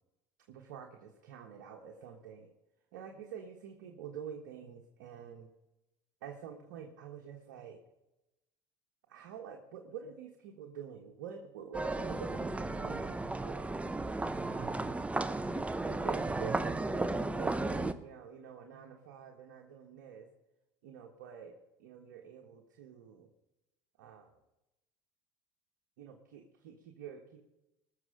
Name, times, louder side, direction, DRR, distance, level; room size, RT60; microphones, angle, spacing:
voice 1, 0.5-2.5 2.9-5.5 6.2-7.8 9.1-13.8 14.5-15.0 15.8-20.3 20.8-21.5 21.8-23.3 24.0-24.4 26.0-27.4, right 8 dB, 85° right, 2 dB, 1.5 m, -47 dB
sound 1, 11.7-17.9, right 2 dB, 10° right, 0.8 m, -34 dB
20.0 x 6.9 x 5.0 m, 0.94 s
supercardioid pair, 85°, 11 cm